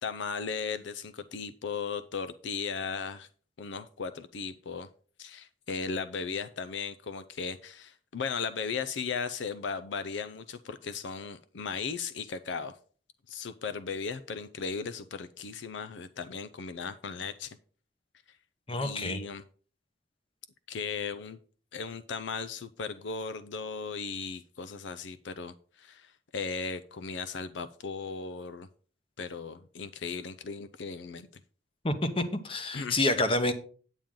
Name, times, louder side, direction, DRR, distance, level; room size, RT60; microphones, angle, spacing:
voice 1, 0.0-3.3 3.6-4.9 5.2-12.7 13.3-17.6 18.8-19.4 20.7-21.4 21.7-28.7 29.2-31.3 32.7-33.0, left 5 dB, 70° left, 10 dB, 0.5 m, -36 dB
voice 2, 18.7-19.2 31.8-33.5, left 2 dB, 30° left, 9 dB, 0.9 m, -28 dB
9.0 x 8.7 x 3.8 m, 0.43 s
head